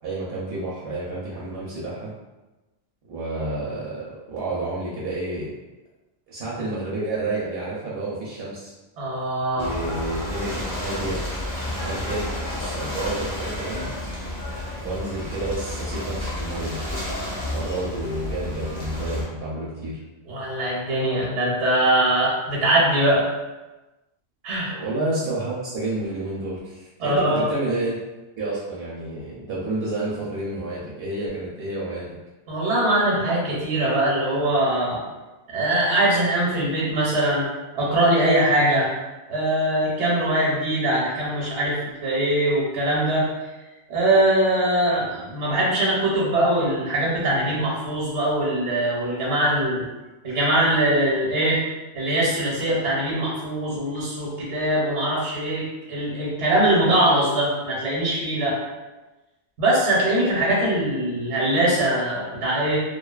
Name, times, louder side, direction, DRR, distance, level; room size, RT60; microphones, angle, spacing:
voice 1, 0.0-2.1 3.1-5.5 6.3-8.7 9.6-11.2 11.8-13.9 14.8-16.8 17.5-20.0 24.7-28.0 28.4-32.1, right 2 dB, 70° right, -6 dB, 0.8 m, -30 dB
voice 2, 9.0-9.7 20.3-23.2 24.4-24.7 27.0-27.5 32.5-35.0 35.5-37.5 37.7-38.9 39.3-43.3 43.9-49.9 50.2-51.6 51.9-58.6 59.6-62.8, right 1 dB, 90° right, -5 dB, 1.0 m, -22 dB
Ocean / Boat Water vehicle, 9.6-19.2, left 1 dB, 20° left, 0.7 m, -30 dB
2.5 x 2.2 x 2.3 m, 1.1 s
omnidirectional pair, 1.1 m